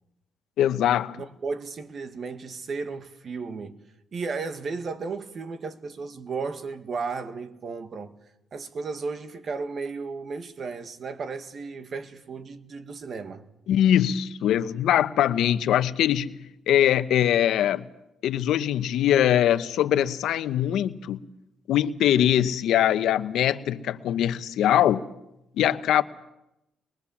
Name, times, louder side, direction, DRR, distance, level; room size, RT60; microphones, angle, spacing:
voice 1, 0.6-1.2 13.7-16.4 16.7-17.8 18.2-21.2 21.7-25.1 25.6-26.0, left 11 dB, 80° left, 1.0 m, -22 dB
voice 2, 1.2-3.8 4.1-8.1 8.5-13.5, right 4 dB, 50° right, 1.9 m, -34 dB
24.0 x 22.0 x 7.3 m
cardioid pair, 90°, 0 cm